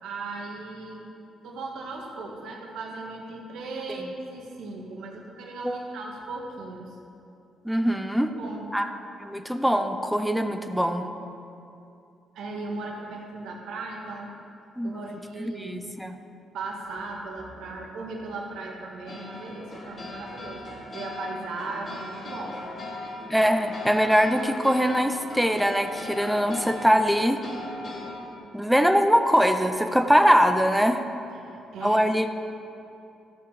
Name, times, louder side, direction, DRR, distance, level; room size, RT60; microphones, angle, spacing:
voice 1, 0.0-1.1 1.4-6.9 8.2-8.7 12.3-14.3 14.8-15.9 16.5-22.5 31.4-32.0, right 3 dB, 80° right, -1 dB, 1.6 m, -37 dB
voice 2, 7.6-8.3 8.7-8.9 9.2-11.1 14.8-16.2 23.3-27.4 28.5-31.0 31.8-32.3, equal, ahead, 6 dB, 0.7 m, -22 dB
sound 1, 19.1-28.4, left 2 dB, 50° left, 2.4 m, -38 dB
13.5 x 6.7 x 4.9 m, 2.6 s
cardioid pair, 90°, 0 cm